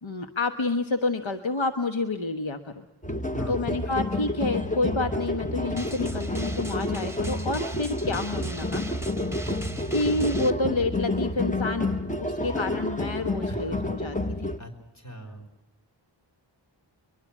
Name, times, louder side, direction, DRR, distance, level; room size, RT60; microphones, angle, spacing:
voice 1, 0.0-2.7 3.5-8.8 9.9-14.5, left 2 dB, 80° left, 6 dB, 1.4 m, -29 dB
sound 1, 3.0-14.6, left 1 dB, 15° left, 1.0 m, -29 dB
voice 2, 3.3-4.0 13.5-13.9 14.6-15.5, right 1 dB, 35° left, 2 dB, 4.8 m, -40 dB
Drum, 5.8-10.5, right 2 dB, 5° right, 1.4 m, -38 dB
23.0 x 23.0 x 7.3 m, 0.95 s
wide cardioid pair, 45°, 46 cm